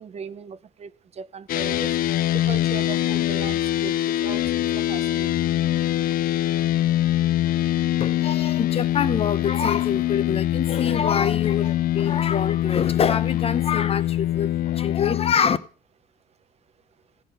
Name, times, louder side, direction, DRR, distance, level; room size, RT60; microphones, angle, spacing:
voice 1, 0.0-2.0 2.5-5.4, right 7 dB, 40° right, 0.6 m, -38 dB
sound 1, 1.5-15.3, left 13 dB, 60° left, 0.4 m, -23 dB
voice 2, 8.0-15.6, left 7 dB, 35° left, 0.8 m, -25 dB
15.0 x 5.7 x 6.2 m
cardioid pair, 110°, 17 cm